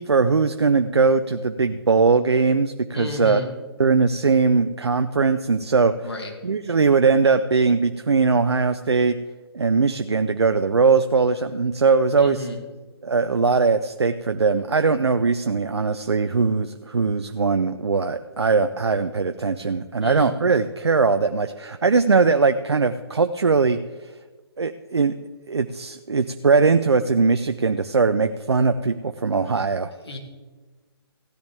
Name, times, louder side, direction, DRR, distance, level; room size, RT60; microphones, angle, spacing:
voice 1, 0.0-3.4 3.8-5.9 6.4-9.2 9.5-12.4 13.0-23.8 24.6-25.1 25.5-29.9, right 4 dB, 80° right, 9 dB, 0.6 m, -20 dB
voice 2, 2.9-3.5 6.0-6.3 12.2-12.6 20.0-20.3 29.9-30.2, left 2 dB, 75° left, 2 dB, 2.4 m, -32 dB
15.5 x 10.5 x 3.5 m, 1.3 s
figure-of-eight pair, 140°, 14 cm